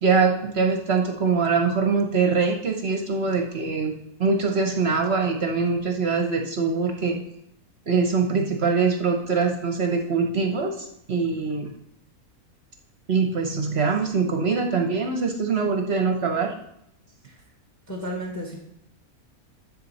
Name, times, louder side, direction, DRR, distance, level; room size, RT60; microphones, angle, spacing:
voice 1, 0.0-3.9 4.2-7.2 7.9-11.7 13.1-16.5, right 4 dB, 50° right, 3 dB, 1.0 m, -23 dB
voice 2, 17.9-18.6, equal, 10° left, 0 dB, 1.3 m, -33 dB
11.0 x 6.8 x 4.1 m, 0.77 s
omnidirectional pair, 1.6 m